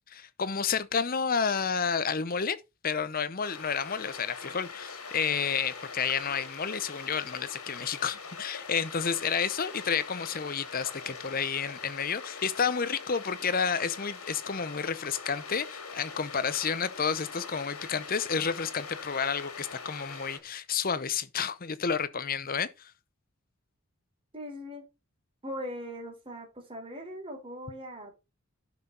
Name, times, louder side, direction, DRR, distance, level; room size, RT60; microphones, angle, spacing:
voice 1, 0.1-2.6 2.8-22.9, left 6 dB, 40° left, 0.8 m, -30 dB
sound 1, 3.4-20.4, left 5 dB, 75° left, 2.4 m, -43 dB
voice 2, 24.3-24.8 25.4-28.1, equal, 25° right, 4.0 m, -40 dB
11.5 x 6.0 x 4.0 m
head